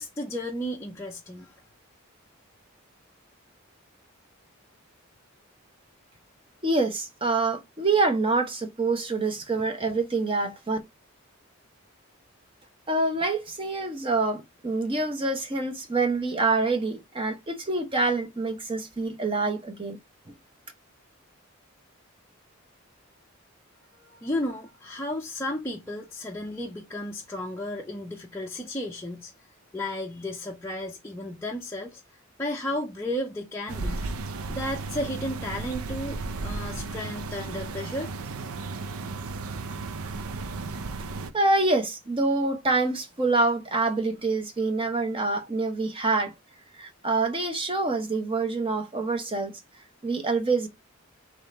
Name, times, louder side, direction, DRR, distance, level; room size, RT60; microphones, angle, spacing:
voice 1, 0.0-1.6 24.0-29.3 29.7-32.0 32.4-34.2 34.5-38.2, left 1 dB, 10° left, 0.5 m, -33 dB
voice 2, 6.6-10.8 12.9-20.0 41.3-46.3 46.8-49.5 50.0-50.7, right 3 dB, 25° right, 0.8 m, -26 dB
sound 1, 33.7-41.3, right 3 dB, 80° right, 0.5 m, -34 dB
3.7 x 3.2 x 3.8 m
head